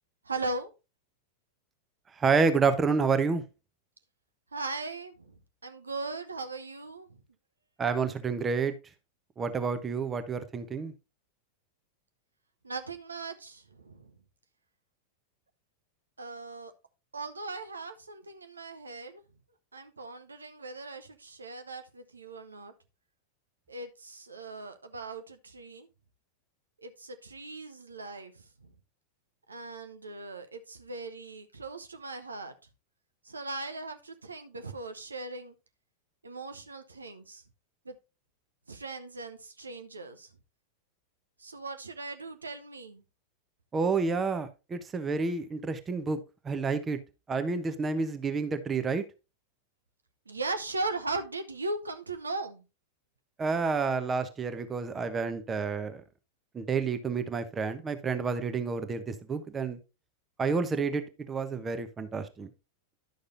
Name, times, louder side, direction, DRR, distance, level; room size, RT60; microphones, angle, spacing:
voice 1, 0.2-0.7 4.5-5.3 5.6-7.2 12.6-14.1 16.2-16.7 17.1-19.2 19.7-22.7 23.7-25.9 26.8-28.7 29.5-32.5 33.2-35.5 36.2-37.4 37.8-37.9 38.7-40.3 41.4-43.0 50.3-52.6, right 3 dB, 75° right, 0.8 m, -38 dB
voice 2, 2.2-3.4 7.8-8.7 9.4-10.9 43.7-46.2 46.4-47.0 47.3-49.0 53.4-56.0 56.5-59.8 60.4-62.5, right 5 dB, 20° right, 1.0 m, -29 dB
11.0 x 6.5 x 2.6 m
figure-of-eight pair, 90°, 0 cm